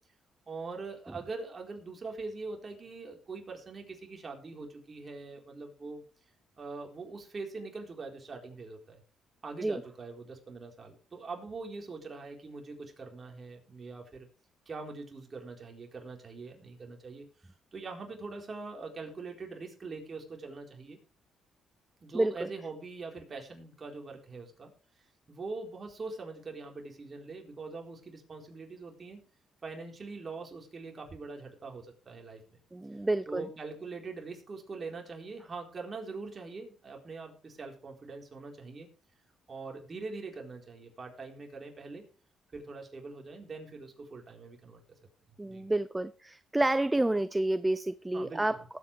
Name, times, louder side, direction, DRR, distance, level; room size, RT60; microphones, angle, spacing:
voice 1, 0.5-6.0 6.6-9.0 9.4-14.3 14.7-21.0 22.0-24.7 25.3-29.2 29.6-32.4 33.3-38.9 39.5-42.0 42.5-44.8 45.5-45.7 48.1-48.6, right 3 dB, 35° right, 1 dB, 4.2 m, -43 dB
voice 2, 22.1-22.5 32.7-33.5 45.4-48.6, right 1 dB, 10° right, 16 dB, 0.5 m, -29 dB
19.0 x 8.6 x 3.4 m, 0.38 s
cardioid pair, 90°, 0 cm